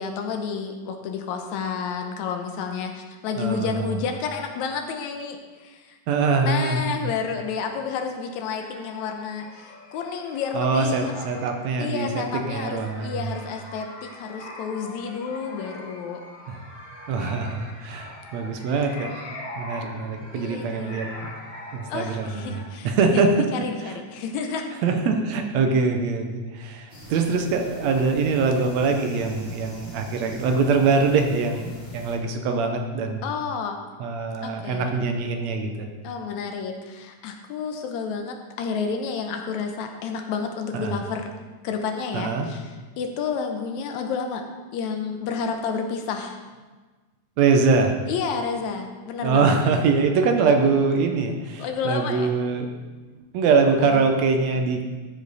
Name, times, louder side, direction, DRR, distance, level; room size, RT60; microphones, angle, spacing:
voice 1, 0.0-6.0 6.4-11.5 11.8-16.2 19.8-20.0 20.3-21.0 21.9-24.7 33.2-33.8 34.4-35.0 36.0-41.3 41.6-44.5 44.7-46.4 48.1-49.6 51.6-52.3 53.8-54.0, left 5 dB, 80° left, 4 dB, 2.1 m, -30 dB
voice 2, 3.4-3.7 6.1-7.1 10.5-13.1 16.5-16.6 17.1-19.1 19.6-21.3 21.7-22.3 22.8-23.5 24.8-33.2 34.0-35.9 40.7-40.9 42.1-42.5 47.4-48.0 49.2-52.9 53.3-54.8, right 4 dB, 75° right, 4 dB, 1.9 m, -23 dB
sound 1, 8.5-22.7, left 1 dB, 65° left, 3.4 m, -42 dB
sound 2, 26.9-32.2, equal, 25° left, 1.7 m, -42 dB
13.0 x 5.1 x 4.0 m, 1.3 s
omnidirectional pair, 3.4 m